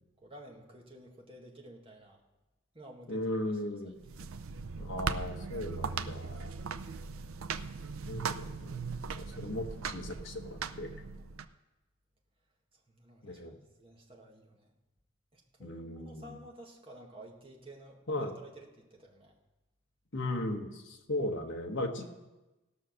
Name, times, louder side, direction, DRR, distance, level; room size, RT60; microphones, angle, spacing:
voice 1, 0.2-2.2 2.7-3.4 3.8-4.2 12.9-14.7 15.3-19.4 22.0-22.1, right 1 dB, 25° right, -1 dB, 1.7 m, -52 dB
voice 2, 3.1-3.9 4.8-6.5 8.0-10.9 13.2-13.5 15.6-16.4 18.1-18.3 20.1-22.1, left 1 dB, 60° left, 2 dB, 1.2 m, -37 dB
sound 1, 4.0-11.4, right 5 dB, 75° right, 0.5 m, -39 dB
17.0 x 6.3 x 6.3 m, 1.0 s
head